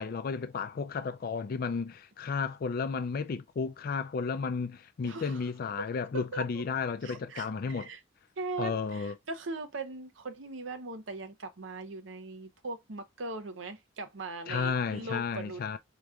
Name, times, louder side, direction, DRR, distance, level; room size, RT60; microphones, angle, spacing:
voice 1, 0.0-7.9 8.6-9.1 14.5-15.8, left 5 dB, 50° left, 0.4 m, -33 dB
voice 2, 5.0-5.5 5.8-5.9 6.1-6.4 7.0-8.0 8.4-15.8, right 3 dB, 85° right, 0.8 m, -40 dB
4.8 x 2.9 x 2.3 m
head